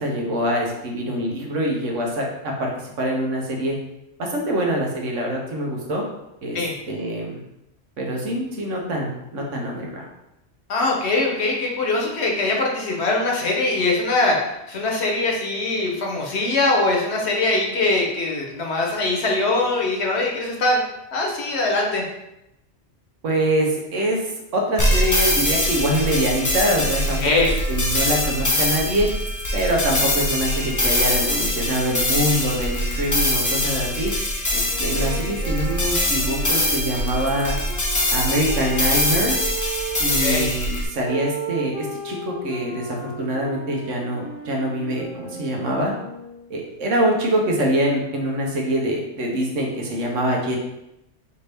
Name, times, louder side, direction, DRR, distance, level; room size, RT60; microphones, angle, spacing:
voice 1, 0.0-2.7 3.0-3.8 4.2-6.0 6.4-6.6 6.9-7.4 8.0-10.0 23.2-29.1 29.5-34.1 34.5-37.5 38.1-39.4 40.0-45.9 46.5-50.6, right 1 dB, 85° right, 0 dB, 1.3 m, -24 dB
voice 2, 10.7-20.8 21.1-22.0 27.2-27.5 40.2-40.5, left 2 dB, 65° left, -1 dB, 1.1 m, -22 dB
sound 1, 24.8-40.8, left 1 dB, 25° left, 0.4 m, -23 dB
sound 2, 34.7-40.3 41.0-46.5, right 3 dB, 55° right, 1.0 m, -35 dB
4.9 x 2.8 x 3.4 m, 0.88 s
omnidirectional pair, 1.2 m